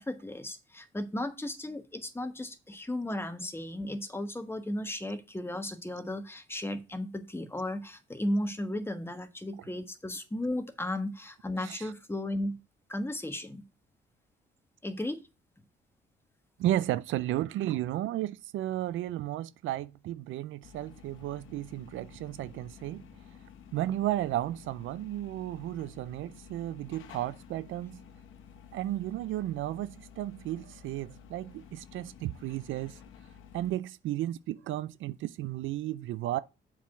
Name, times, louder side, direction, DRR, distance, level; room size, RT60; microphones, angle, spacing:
voice 1, 0.0-12.6 12.9-13.6 14.8-15.2, left 1 dB, 10° left, 1.3 m, -35 dB
voice 2, 16.6-23.1 23.7-28.0 28.7-33.0 33.5-36.4, right 14 dB, 80° right, 0.5 m, -33 dB
sound 1, 20.6-33.8, left 8 dB, 85° left, 1.1 m, -52 dB
7.1 x 4.8 x 5.9 m
cardioid pair, 90°, 20 cm